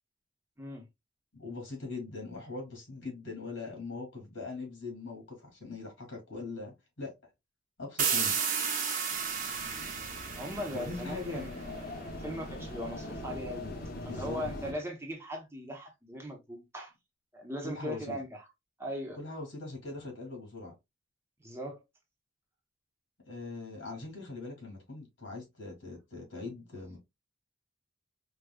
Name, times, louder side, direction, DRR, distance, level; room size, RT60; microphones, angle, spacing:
voice 1, 1.3-7.1 7.8-8.4 10.7-11.5 13.6-14.4 17.6-18.2 19.2-20.7 23.3-27.0, left 3 dB, 75° left, 2.1 m, -41 dB
sound 1, 8.0-11.6, right 6 dB, 45° right, 0.8 m, -32 dB
sound 2, 9.1-14.7, left 1 dB, 50° left, 0.7 m, -42 dB
voice 2, 10.4-13.6 14.1-16.9 17.3-18.4 18.8-19.2 21.4-21.8, equal, 15° right, 0.7 m, -39 dB
4.8 x 2.2 x 2.2 m
head